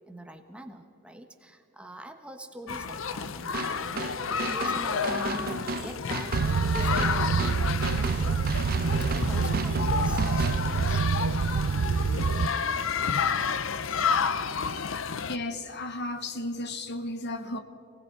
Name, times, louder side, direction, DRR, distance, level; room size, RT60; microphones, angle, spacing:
voice 1, 0.0-8.4 9.1-11.1, equal, 5° right, 1.2 m, -43 dB
sound 1, 2.7-15.4, left 6 dB, 70° left, 0.7 m, -30 dB
sound 2, 3.5-10.6, right 3 dB, 45° right, 0.7 m, -35 dB
sound 3, 6.3-12.5, right 5 dB, 80° right, 0.4 m, -27 dB
voice 2, 15.3-17.6, left 2 dB, 55° left, 1.1 m, -34 dB
28.5 x 19.0 x 4.8 m
head